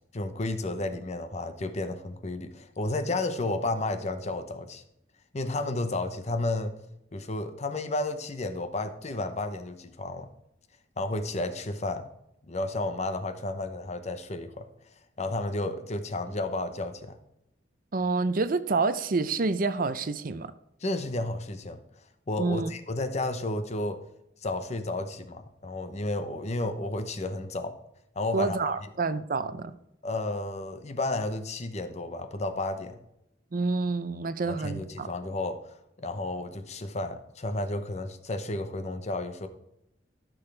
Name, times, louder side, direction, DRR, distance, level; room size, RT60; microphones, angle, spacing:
voice 1, 0.1-4.8 5.3-6.7 7.1-10.3 11.0-12.1 12.5-14.7 15.2-17.2 20.8-21.8 22.3-24.0 24.4-27.8 28.2-28.7 30.0-33.0 34.5-35.6 36.0-39.5, left 2 dB, 35° left, 0.8 m, -32 dB
voice 2, 17.9-20.5 22.4-22.7 28.3-29.7 33.5-35.1, right 3 dB, 50° right, 0.5 m, -28 dB
13.5 x 6.2 x 3.3 m
head